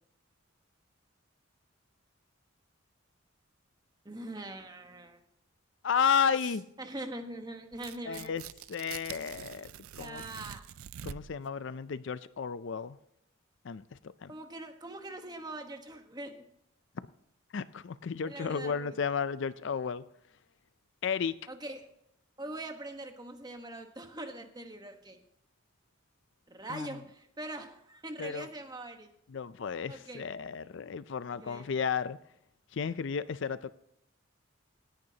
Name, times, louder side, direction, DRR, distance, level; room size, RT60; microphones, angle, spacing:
voice 1, 4.0-5.2 6.8-8.4 10.0-10.6 14.3-16.3 18.2-19.0 21.5-21.9 22.4-25.2 26.5-29.1 29.9-30.3 31.4-31.7, right 1 dB, 20° right, 1.2 m, -42 dB
voice 2, 5.8-6.6 8.1-8.4 8.7-9.7 10.0-10.2 11.0-13.0 13.6-13.8 14.2-14.3 17.5-20.0 21.0-21.4 26.7-26.9 28.2-28.5 29.3-32.2 32.7-33.7, left 6 dB, 60° left, 0.4 m, -32 dB
Tearing, 7.7-11.5, right 9 dB, 85° right, 0.4 m, -46 dB
17.5 x 10.5 x 2.9 m
head